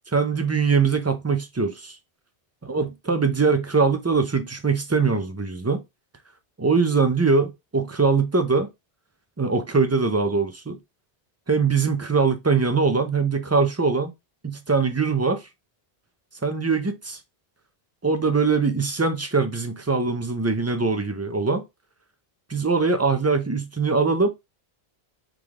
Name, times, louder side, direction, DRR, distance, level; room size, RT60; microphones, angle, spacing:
voice 1, 0.1-2.0 2.7-5.8 6.6-8.7 9.4-10.8 11.5-14.1 14.4-15.5 16.4-17.2 18.0-21.6 22.5-24.3, right 4 dB, 25° right, 0.3 m, -22 dB
3.7 x 3.2 x 3.5 m
omnidirectional pair, 1.1 m